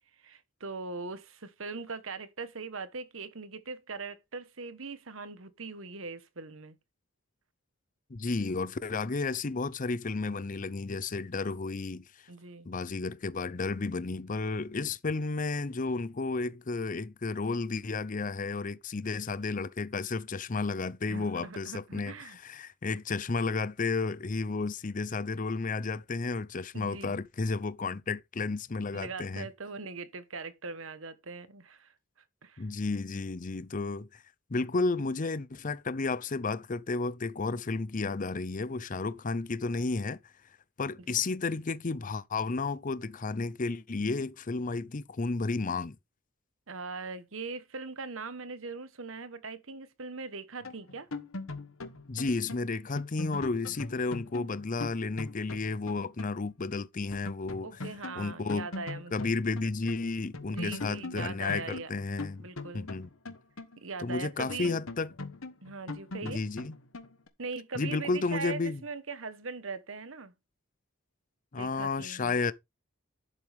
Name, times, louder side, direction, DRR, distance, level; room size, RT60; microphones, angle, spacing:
voice 1, 0.2-6.8 12.3-12.7 21.1-22.4 26.7-27.2 28.9-31.9 32.4-32.7 41.1-41.2 46.7-51.1 57.6-59.3 60.5-61.9 62.4-62.9 63.8-64.8 65.6-66.4 67.4-70.3 71.6-72.3, right 4 dB, 70° right, 1.2 m, -40 dB
voice 2, 8.1-12.0 12.6-29.5 32.6-34.2 34.5-40.2 40.8-46.0 52.1-57.7 58.2-58.7 59.1-61.6 61.9-62.4 62.7-63.1 64.0-65.1 66.2-66.7 67.8-68.8 71.5-72.5, left 3 dB, 40° left, 0.6 m, -32 dB
sound 1, 50.6-56.4 56.7-56.8 57.1-60.0 60.3-64.1 64.5-67.3, left 2 dB, 75° left, 1.3 m, -41 dB
11.0 x 7.7 x 3.5 m
head